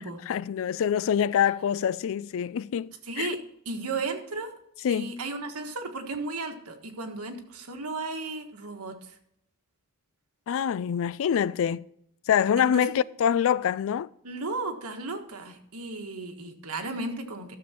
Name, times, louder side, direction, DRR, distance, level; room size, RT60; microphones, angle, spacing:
voice 1, 0.3-3.3 4.8-5.1 10.5-11.9 12.3-14.1, left 8 dB, 65° left, 0.3 m, -25 dB
voice 2, 3.1-3.4 3.6-4.5 4.9-9.1 12.6-12.9 14.2-17.6, right 3 dB, 85° right, 1.5 m, -34 dB
12.5 x 7.1 x 4.3 m
head